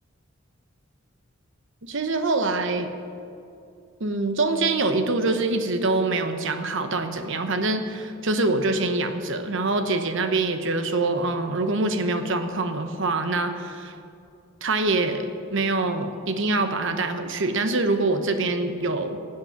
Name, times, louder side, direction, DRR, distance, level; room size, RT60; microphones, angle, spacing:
voice 1, 1.8-2.9 4.0-13.9 14.6-19.2, right 2 dB, 60° right, 8 dB, 1.0 m, -25 dB
16.0 x 7.8 x 5.9 m, 2.5 s
head